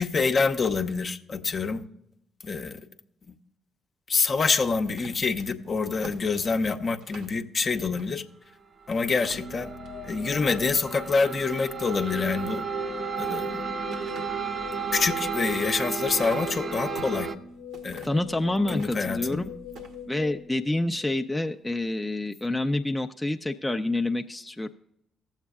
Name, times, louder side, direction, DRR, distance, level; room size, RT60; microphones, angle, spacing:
voice 1, 0.0-1.8 2.4-2.8 4.1-8.2 8.9-9.7 10.0-12.6 13.2-13.6 14.9-17.3 17.8-18.1 18.7-19.5, left 4 dB, 45° left, 0.7 m, -26 dB
sound 1, 4.9-7.4 7.9-8.1 8.5-8.6 9.0-10.0 10.5-10.9 12.7-13.5 13.9-17.2 17.7-18.3 18.7-19.4 19.7-20.0, right 2 dB, 75° right, 1.2 m, -47 dB
sound 2, 8.8-17.4, right 6 dB, 45° right, 0.7 m, -33 dB
sound 3, 9.3-21.4, left 6 dB, 80° left, 0.7 m, -42 dB
voice 2, 18.0-19.5 20.1-24.7, left 2 dB, 15° left, 0.5 m, -28 dB
16.0 x 7.3 x 2.4 m
hypercardioid pair, 45°, 0 cm